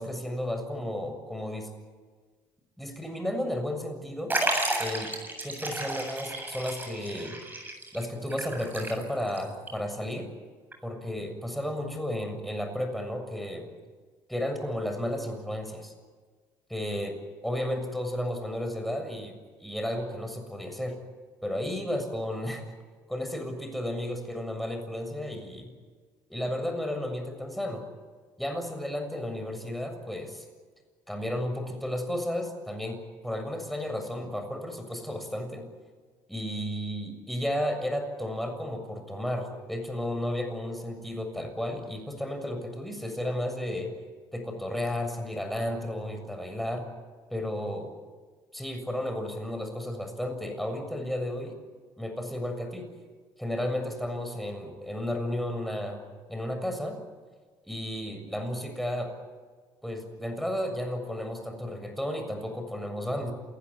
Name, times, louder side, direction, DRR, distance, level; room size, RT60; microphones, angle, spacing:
voice 1, 0.0-1.7 2.8-4.3 4.8-5.1 5.4-7.4 7.9-10.3 10.8-13.7 14.3-15.9 16.7-17.1 17.4-19.3 19.6-20.9 21.4-22.7 23.1-25.7 26.3-27.8 28.4-30.5 31.1-33.0 33.2-35.6 36.3-43.9 44.3-46.8 47.3-47.9 48.5-51.6 52.0-52.9 53.4-57.0 57.7-59.1 59.8-63.3, left 1 dB, ahead, 5 dB, 7.0 m, -33 dB
Liquid, 4.3-9.4 9.7-9.8 10.7-10.8, right 2 dB, 20° right, 8.0 m, -32 dB
28.5 x 16.5 x 9.6 m, 1.5 s
supercardioid pair, 75°, 10 cm